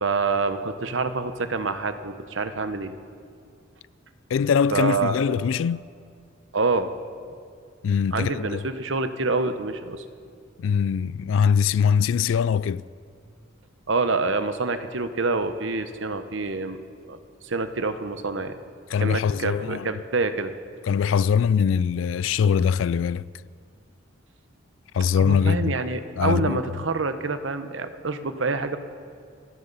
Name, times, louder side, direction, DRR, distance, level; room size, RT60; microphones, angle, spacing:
voice 1, 0.0-2.9 4.7-5.2 6.5-6.9 8.1-10.0 13.9-16.8 17.1-17.2 17.4-18.5 19.0-20.5 25.2-28.8, right 3 dB, 65° right, 0.9 m, -26 dB
voice 2, 4.3-5.9 7.8-8.6 10.6-12.8 18.9-19.9 20.9-23.3 24.9-25.7 26.2-26.6, left 7 dB, 75° left, 0.3 m, -22 dB
27.5 x 11.0 x 4.1 m
head